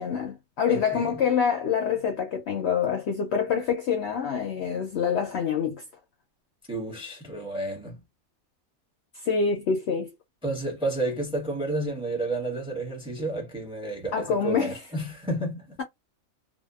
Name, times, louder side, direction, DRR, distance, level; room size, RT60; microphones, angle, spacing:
voice 1, 0.0-5.8 9.2-10.1 14.1-14.8, left 6 dB, 65° left, 0.7 m, -26 dB
voice 2, 0.7-1.2 6.7-8.0 10.4-15.8, right 2 dB, 5° right, 0.7 m, -31 dB
2.7 x 2.1 x 2.2 m
omnidirectional pair, 1.5 m